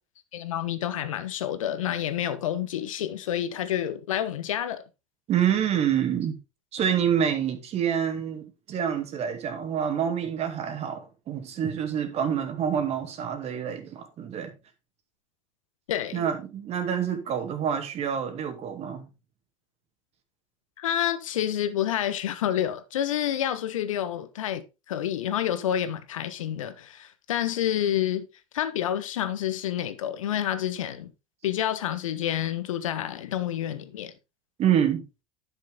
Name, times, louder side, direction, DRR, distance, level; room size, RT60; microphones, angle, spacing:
voice 1, 0.3-4.8 15.9-16.3 20.8-28.3 28.5-31.1 31.4-34.1, left 11 dB, 75° left, 1.3 m, -29 dB
voice 2, 5.3-6.4 6.7-14.5 16.1-19.1 34.6-35.0, right 8 dB, 40° right, 2.4 m, -27 dB
11.0 x 6.4 x 3.7 m
hypercardioid pair, 85°, 17 cm